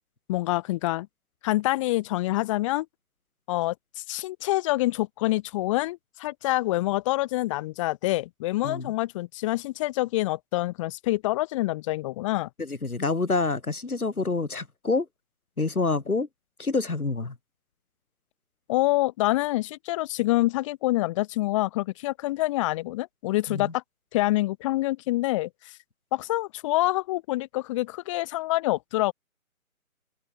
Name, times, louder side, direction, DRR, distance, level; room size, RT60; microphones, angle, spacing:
voice 1, 0.3-1.1 1.4-2.9 3.5-12.5 18.7-23.8 24.1-25.5 26.1-29.1, left 18 dB, 20° left, 7.1 m, -26 dB
voice 2, 12.6-15.1 15.6-16.3 16.6-17.4 23.5-23.7, left 3 dB, 85° left, 3.6 m, -27 dB
figure-of-eight pair, 155°, 43 cm